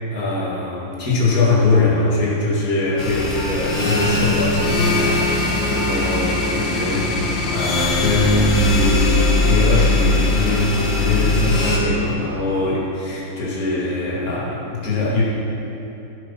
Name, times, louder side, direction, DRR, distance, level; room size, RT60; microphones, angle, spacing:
voice 1, 0.1-15.2, left 2 dB, 45° left, -6 dB, 2.7 m, -21 dB
sound 1, 3.0-11.8, left 2 dB, 70° left, 2.2 m, -20 dB
sound 2, 3.4-3.5 4.0-4.1 4.6-4.7 5.2-5.3 5.8-5.9, right 5 dB, 25° right, 2.2 m, -35 dB
15.0 x 7.8 x 5.8 m, 2.9 s
omnidirectional pair, 2.1 m